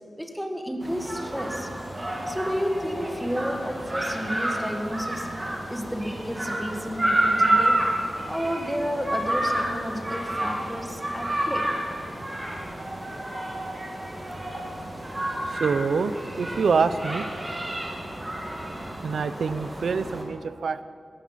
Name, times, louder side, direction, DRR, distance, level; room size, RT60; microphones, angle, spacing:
voice 1, 0.2-1.7 2.3-5.3 5.7-7.8 8.3-11.8, equal, ahead, 4 dB, 1.8 m, -31 dB
sound 1, 0.8-20.2, right 1 dB, 25° right, 3.1 m, -29 dB
voice 2, 15.5-17.3 19.0-20.8, right 5 dB, 80° right, 13 dB, 0.7 m, -26 dB
18.0 x 14.0 x 5.9 m, 2.1 s
wide cardioid pair, 80°, 0 cm